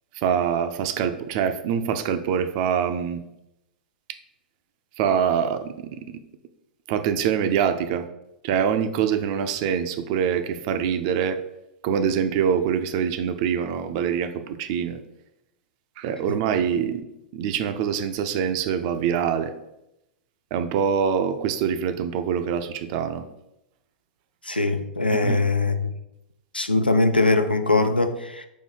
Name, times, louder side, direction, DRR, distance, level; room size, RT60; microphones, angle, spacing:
voice 1, 0.2-3.2 5.0-6.1 6.9-8.1 8.4-11.4 11.8-15.0 16.0-17.0 17.3-19.5 20.5-23.2 25.1-25.4, right 8 dB, 40° right, 0.4 m, -24 dB
voice 2, 24.5-25.9 26.5-28.5, left 3 dB, 90° left, 0.4 m, -21 dB
4.5 x 2.7 x 4.5 m
figure-of-eight pair, 100°, 5 cm